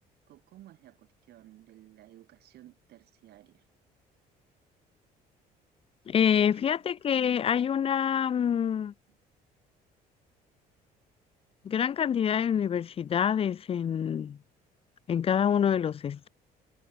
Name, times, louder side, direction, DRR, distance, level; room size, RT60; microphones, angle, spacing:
voice 1, 0.3-3.6 6.3-6.7, right 14 dB, 75° right, 7.4 m, -55 dB
voice 2, 6.1-8.9 11.6-14.4 15.1-16.3, left 8 dB, 35° left, 0.5 m, -26 dB
cardioid pair, 110°, 17 cm